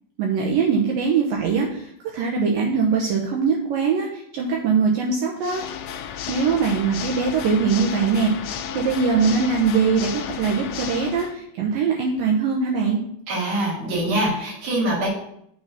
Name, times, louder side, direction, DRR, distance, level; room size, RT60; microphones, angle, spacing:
voice 1, 0.2-5.6 6.3-13.0, right 5 dB, 75° right, -1 dB, 2.1 m, -22 dB
Water / Mechanisms, 5.4-11.4, left 8 dB, 90° left, 2.0 m, -33 dB
voice 2, 13.3-15.1, right 1 dB, 60° right, -4 dB, 4.1 m, -24 dB
7.2 x 3.9 x 6.6 m, 0.71 s
omnidirectional pair, 4.9 m